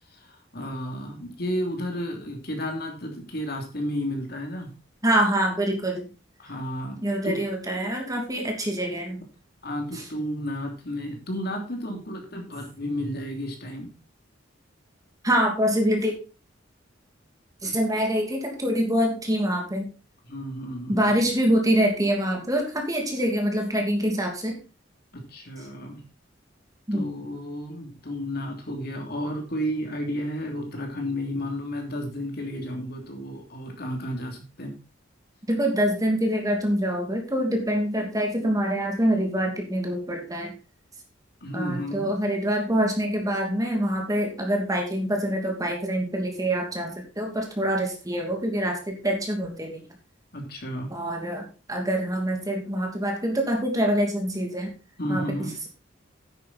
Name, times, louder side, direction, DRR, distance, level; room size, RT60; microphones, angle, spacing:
voice 1, 0.1-4.7 6.4-7.4 9.6-13.9 17.6-18.0 20.3-21.2 25.1-26.0 26.9-34.8 41.4-42.1 50.3-50.9 55.0-55.5, equal, 55° left, 2 dB, 3.1 m, -32 dB
voice 2, 5.0-6.1 7.0-9.2 9.9-10.0 15.2-16.1 17.6-19.9 20.9-24.6 26.9-27.1 35.5-40.5 41.5-49.8 50.9-54.7 55.1-55.7, equal, 20° right, 2 dB, 2.8 m, -25 dB
10.0 x 8.9 x 4.3 m, 0.32 s
head